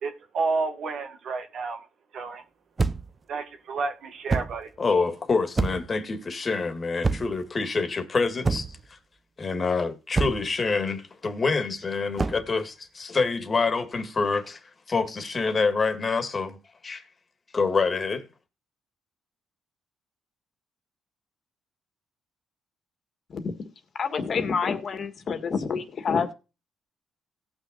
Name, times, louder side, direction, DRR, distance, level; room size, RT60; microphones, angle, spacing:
voice 1, 0.0-1.9 2.1-2.4 3.3-4.7, right 4 dB, 65° right, 1.7 m, -30 dB
sound 1, 2.8-3.2 4.3-4.6 5.6-6.0 7.0-7.4 8.4-8.9 10.2-10.5 12.2-12.5, right 3 dB, 25° right, 0.7 m, -26 dB
voice 2, 4.8-9.0 9.4-14.6 14.9-16.6 16.8-17.0 17.5-18.3, left 4 dB, 35° left, 1.8 m, -26 dB
voice 3, 23.9-26.3, left 5 dB, 50° left, 1.6 m, -27 dB
18.0 x 6.2 x 2.4 m
cardioid pair, 90°, 0 cm